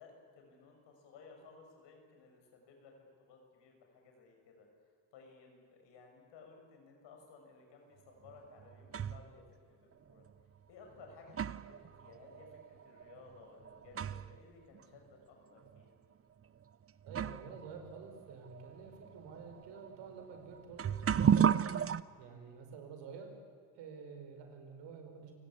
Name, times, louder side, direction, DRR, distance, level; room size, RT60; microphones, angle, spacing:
voice 1, 0.0-4.7 5.1-9.4 10.1-10.2 10.7-16.0 22.2-22.6, left 4 dB, 80° left, 2 dB, 6.6 m, -58 dB
sound 1, 8.2-9.3 10.3-10.4 11.0-14.4 14.7-14.8 15.7-15.8 16.6-16.7 17.1-22.0, right 8 dB, 35° right, 0.8 m, -34 dB
voice 2, 17.1-21.6 22.2-23.3 23.7-25.3, right 5 dB, 80° right, 5 dB, 4.9 m, -50 dB
28.5 x 18.0 x 8.4 m, 2.1 s
supercardioid pair, 70°, 42 cm